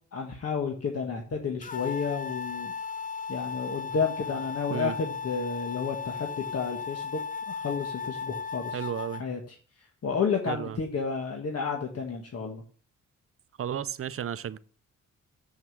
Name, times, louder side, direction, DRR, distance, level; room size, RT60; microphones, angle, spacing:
voice 1, 0.1-2.7 3.3-7.2 7.5-8.9 9.2-9.6 10.0-12.6, left 5 dB, 50° left, 1.5 m, -31 dB
sound 1, 1.6-9.2, left 5 dB, 25° left, 0.9 m, -36 dB
voice 2, 8.7-9.2 10.5-10.8 13.6-14.6, right 9 dB, 45° right, 0.6 m, -33 dB
7.4 x 6.1 x 6.1 m
cardioid pair, 80°, 31 cm